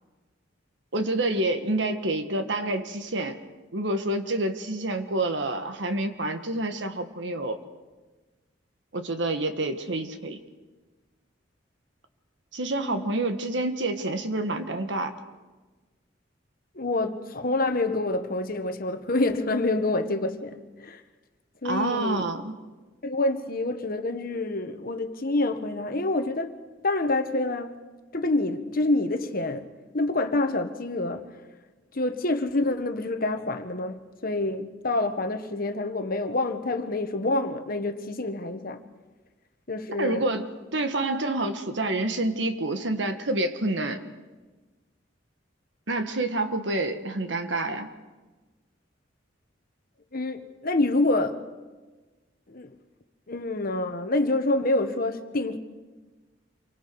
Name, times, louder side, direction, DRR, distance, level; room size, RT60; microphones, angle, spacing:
voice 1, 0.9-3.4 3.7-7.6 8.9-10.4 12.5-15.1 21.6-22.5 40.0-44.0 45.9-47.9, right 2 dB, 70° right, 1.6 m, -28 dB
voice 2, 12.7-13.1 16.7-21.0 21.6-22.2 23.0-26.5 26.8-27.7 28.1-29.7 29.9-31.3 31.9-38.8 39.7-40.2 50.1-51.4 52.5-52.7 53.3-55.6, left 2 dB, 50° left, 1.3 m, -27 dB
28.0 x 24.0 x 4.8 m
head